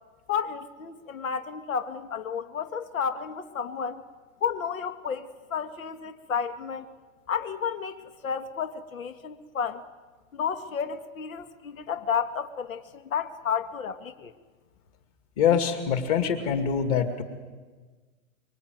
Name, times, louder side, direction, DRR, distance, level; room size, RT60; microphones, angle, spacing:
voice 1, 0.3-4.0 4.4-6.9 7.3-9.8 10.3-14.3, left 7 dB, 80° left, 9 dB, 1.9 m, -32 dB
voice 2, 15.4-17.2, left 7 dB, 25° left, 7 dB, 2.3 m, -24 dB
25.0 x 23.5 x 9.4 m, 1.4 s
hypercardioid pair, 175°, 40 cm